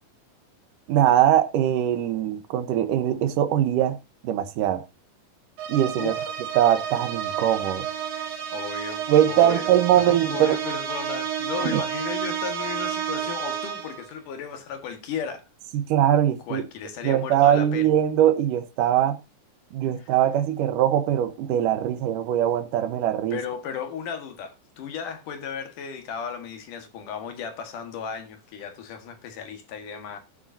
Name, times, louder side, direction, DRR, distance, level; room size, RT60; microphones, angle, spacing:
voice 1, 0.9-4.0 4.2-4.8 5.7-6.1 6.6-7.9 9.1-10.5 11.6-11.8 15.7-16.6 17.0-19.2 19.7-23.4, right 11 dB, 85° right, 2.6 m, -21 dB
sound 1, 5.6-14.1, right 9 dB, 70° right, 2.8 m, -31 dB
voice 2, 6.0-6.3 8.5-9.7 9.9-15.4 16.4-17.9 20.0-20.1 23.3-30.2, left 7 dB, 75° left, 3.2 m, -35 dB
17.5 x 7.7 x 2.7 m
omnidirectional pair, 3.7 m